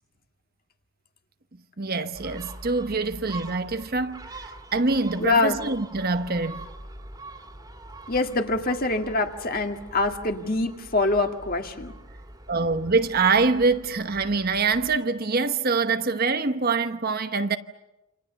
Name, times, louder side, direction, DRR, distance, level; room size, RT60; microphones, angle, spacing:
voice 1, 1.8-6.6 12.5-17.6, right 4 dB, 40° right, 1.0 m, -25 dB
Gull seagull, 2.1-15.0, right 2 dB, 15° right, 2.3 m, -44 dB
voice 2, 5.2-5.6 8.1-11.9, left 3 dB, 40° left, 2.1 m, -25 dB
28.5 x 27.0 x 7.0 m
head